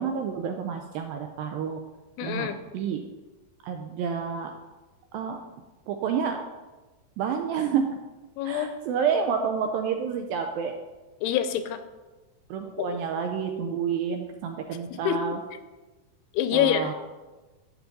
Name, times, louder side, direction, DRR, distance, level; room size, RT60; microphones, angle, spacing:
voice 1, 0.0-1.8 2.2-2.5 2.7-3.0 3.6-4.5 5.1-5.4 5.9-6.4 7.2-7.8 8.4-10.7 12.5-15.4 16.5-16.9, right 7 dB, 85° right, 4 dB, 2.1 m, -29 dB
voice 2, 2.2-2.6 8.4-8.8 11.2-11.8 12.8-13.0 14.9-15.4 16.3-16.9, left 10 dB, 85° left, 10 dB, 2.6 m, -26 dB
11.5 x 6.9 x 4.1 m, 1.2 s
omnidirectional pair, 4.7 m